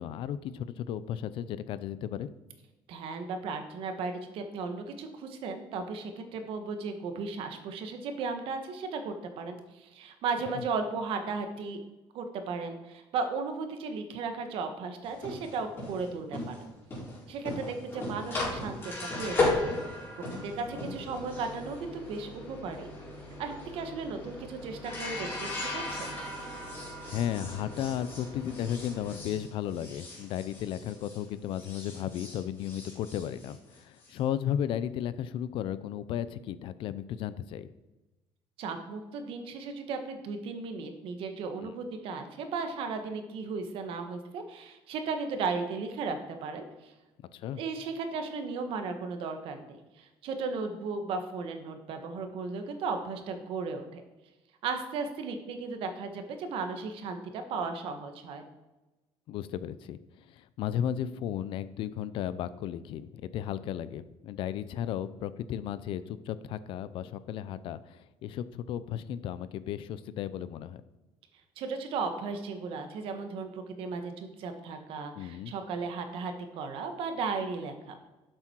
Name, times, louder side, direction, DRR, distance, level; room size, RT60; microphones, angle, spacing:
voice 1, 0.0-2.3 10.5-10.6 27.1-37.7 41.6-41.7 47.3-47.6 59.3-70.8 75.2-75.5, left 10 dB, 60° left, 15 dB, 0.5 m, -34 dB
voice 2, 2.9-11.8 12.1-16.6 17.3-19.5 20.4-22.9 23.4-26.1 38.6-46.9 47.6-54.0 54.6-58.4 71.6-78.0, right 4 dB, 60° right, 6 dB, 1.4 m, -35 dB
sound 1, 15.0-31.2 31.5-34.1, left 2 dB, 25° left, 4.1 m, -36 dB
12.0 x 7.7 x 4.5 m, 1.1 s
cardioid pair, 180°, 10 cm